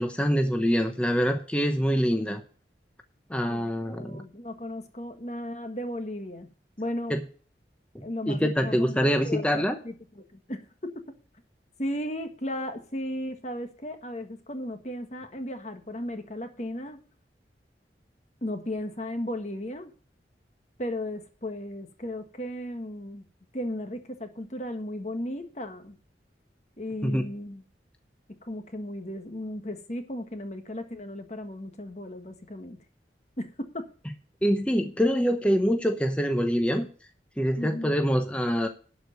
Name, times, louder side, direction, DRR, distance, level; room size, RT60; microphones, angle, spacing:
voice 1, 0.0-2.4 3.3-4.2 7.1-7.2 8.3-9.8 27.0-27.3 34.4-36.9 37.4-38.7, equal, 5° left, 0.9 m, -25 dB
voice 2, 3.5-6.5 6.8-7.2 8.0-9.0 9.2-11.1 11.8-17.0 18.4-19.9 20.8-23.2 23.5-26.0 26.8-27.6 28.4-32.8 33.4-33.9 37.6-37.9, left 1 dB, 40° left, 1.5 m, -35 dB
12.0 x 5.0 x 7.8 m
head